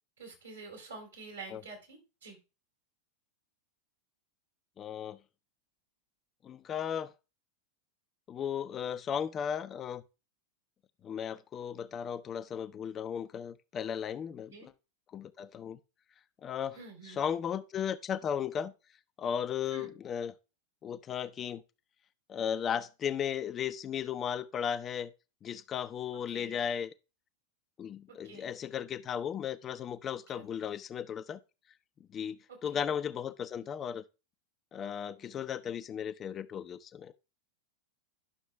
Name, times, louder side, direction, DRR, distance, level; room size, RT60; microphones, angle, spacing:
voice 1, 0.2-2.4 14.5-14.7 16.7-17.2 19.7-19.9 26.1-26.6 28.1-28.5 30.3-30.7 32.5-32.8, right 3 dB, 70° right, 4.1 m, -48 dB
voice 2, 4.8-5.2 6.4-7.1 8.3-10.0 11.0-14.5 15.1-15.8 16.4-16.8 17.1-18.7 19.2-20.3 20.8-21.6 22.3-25.1 25.4-26.9 27.8-31.4 32.1-34.0 34.7-37.1, left 8 dB, 25° left, 0.6 m, -35 dB
11.0 x 6.3 x 3.4 m
figure-of-eight pair, 90°, 0 cm